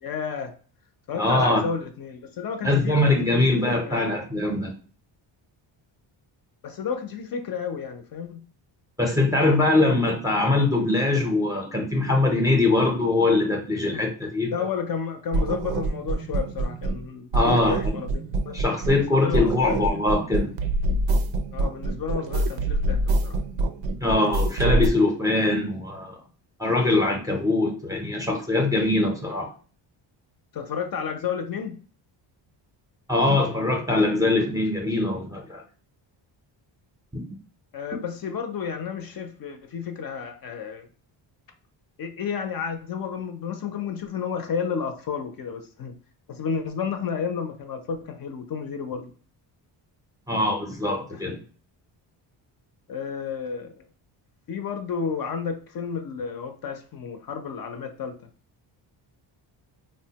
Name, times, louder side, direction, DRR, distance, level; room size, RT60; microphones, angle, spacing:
voice 1, 0.0-0.5 1.1-3.0 3.3-4.1 6.6-8.4 14.5-18.6 18.9-19.8 21.5-23.4 30.5-31.8 37.7-40.9 42.0-45.9 46.3-49.1 51.1-51.3 52.9-53.8 54.5-58.2, left 6 dB, 50° left, 6 dB, 0.5 m, -31 dB
voice 2, 1.2-1.6 2.6-4.7 9.0-14.5 17.3-18.0 18.5-20.5 24.0-26.2 26.6-29.5 33.1-35.6 37.1-37.3 50.3-51.4, left 2 dB, 10° right, 1 dB, 0.5 m, -22 dB
sound 1, 15.3-17.1 17.3-19.1 19.3-24.9, right 2 dB, 70° right, 0.5 m, -26 dB
3.7 x 2.1 x 2.7 m, 0.41 s
cardioid pair, 125°, 48 cm